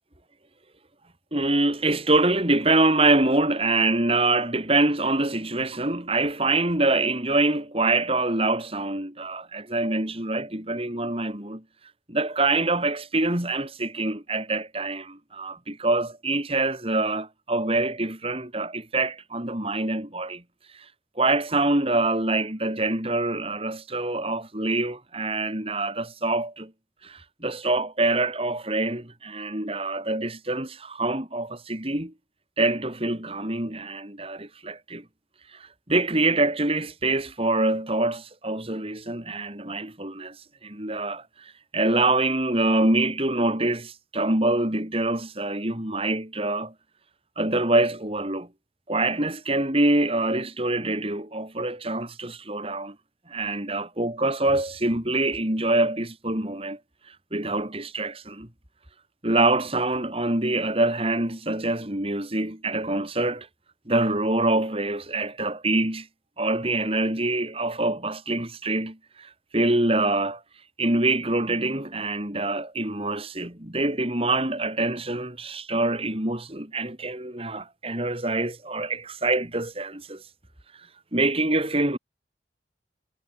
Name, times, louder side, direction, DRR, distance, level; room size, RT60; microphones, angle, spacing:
voice 1, 1.3-11.6 12.1-20.4 21.2-26.7 27.0-32.1 32.6-35.0 35.5-40.4 40.6-46.7 47.4-48.5 48.9-53.0 53.3-56.8 57.3-58.5 59.2-63.5 63.9-66.1 66.4-70.4 70.8-80.2 81.1-82.0, right 2 dB, 35° right, 4.2 m, -25 dB
head